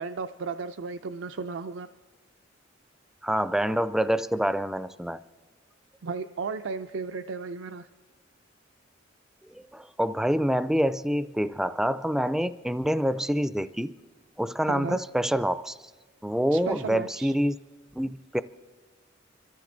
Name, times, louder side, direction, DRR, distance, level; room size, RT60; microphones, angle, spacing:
voice 1, 0.0-1.9 6.0-7.9 14.7-15.0 16.5-17.3, right 4 dB, 80° right, 9 dB, 0.5 m, -34 dB
voice 2, 3.2-5.2 9.5-13.9 14.4-15.8 16.2-17.6 18.0-18.4, equal, 5° right, 14 dB, 0.4 m, -26 dB
24.5 x 14.0 x 3.9 m, 1.3 s
head